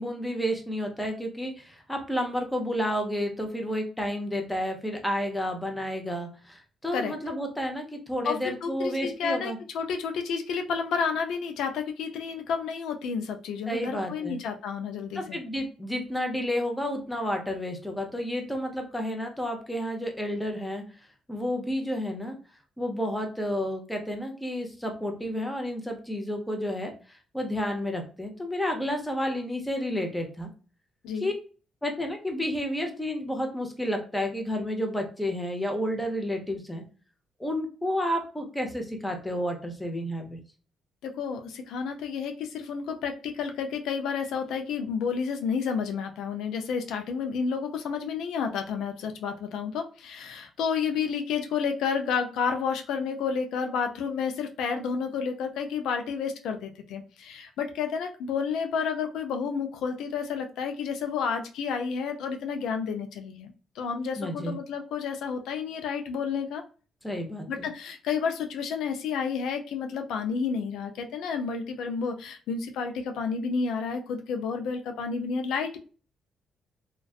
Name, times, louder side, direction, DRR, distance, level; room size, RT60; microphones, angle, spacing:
voice 1, 0.0-9.6 13.7-14.4 15.1-20.8 21.3-22.4 22.8-30.5 31.1-31.3 31.8-36.8 37.4-40.4 64.2-64.5 67.0-67.7, equal, 5° left, 3 dB, 0.7 m, -31 dB
voice 2, 8.2-15.4 31.0-31.3 41.0-66.6 67.5-75.8, left 6 dB, 85° left, 5 dB, 0.4 m, -30 dB
2.4 x 2.2 x 2.3 m, 0.38 s
cardioid pair, 90°, 0 cm